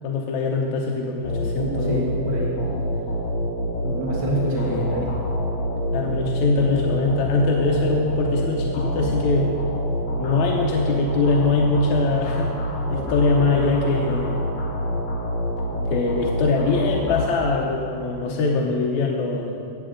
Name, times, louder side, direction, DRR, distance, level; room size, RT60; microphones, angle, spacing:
voice 1, 0.0-2.1 4.5-4.9 5.9-9.5 10.2-12.5 12.9-14.4 15.7-19.6, left 3 dB, 70° left, -1 dB, 2.1 m, -22 dB
sound 1, 1.2-17.8, equal, 50° left, 3.4 m, -26 dB
voice 2, 1.6-2.6 3.8-5.1 18.2-18.4, right 1 dB, 50° right, -3 dB, 0.8 m, -27 dB
16.5 x 8.0 x 3.8 m, 2.6 s
omnidirectional pair, 3.6 m